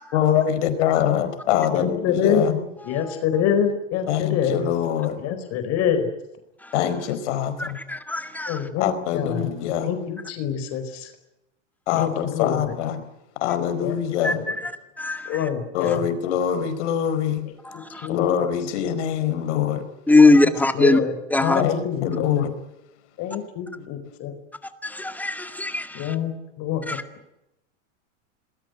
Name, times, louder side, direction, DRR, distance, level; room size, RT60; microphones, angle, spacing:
voice 1, 0.1-2.6 4.1-5.2 6.7-7.8 8.8-9.9 11.9-13.0 13.4-14.4 15.7-17.5 18.1-19.9 21.5-22.5, left 9 dB, 65° left, 10 dB, 4.8 m, -24 dB
voice 2, 1.5-2.6 2.8-4.7 5.1-6.1 8.5-9.5 9.8-11.1 11.9-12.7 13.8-14.0 14.3-14.5 15.3-16.0 17.7-18.2 20.2-20.4 20.7-21.1 21.4-22.4 23.2-24.3 25.9-26.3 26.6-27.0, left 8 dB, 40° left, 8 dB, 4.5 m, -26 dB
voice 3, 7.6-8.6 14.2-14.7 15.0-15.5 17.6-18.1 20.1-21.0 21.3-21.6 24.8-26.2 26.9-27.0, left 2 dB, 5° left, 8 dB, 2.1 m, -21 dB
27.0 x 20.5 x 8.0 m, 0.89 s
supercardioid pair, 135°, 38 cm